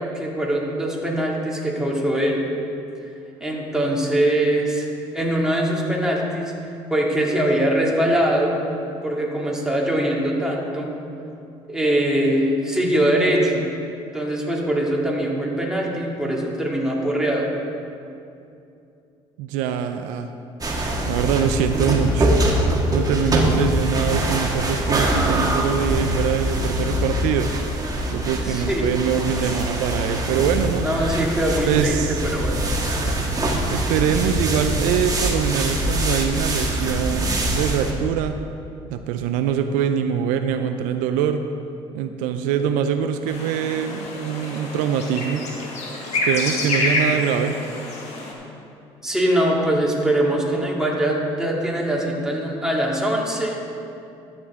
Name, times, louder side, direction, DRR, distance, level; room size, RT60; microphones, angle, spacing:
voice 1, 0.0-2.4 3.4-4.9 5.1-6.5 6.9-8.6 9.0-10.9 11.7-13.7 14.1-17.5 28.4-28.9 30.8-32.6 49.0-53.6, right 1 dB, 5° right, -3 dB, 2.3 m, -22 dB
voice 2, 19.4-20.3 21.0-27.5 28.1-30.9 31.6-32.2 33.7-38.4 38.9-41.4 41.9-45.5 46.3-47.6, right 8 dB, 80° right, 8 dB, 0.4 m, -23 dB
sound 1, 20.6-37.9, right 1 dB, 30° right, 1.9 m, -23 dB
sound 2, 43.3-48.3, left 2 dB, 55° left, 2.1 m, -27 dB
13.0 x 8.1 x 3.7 m, 2.6 s
supercardioid pair, 65°, 13 cm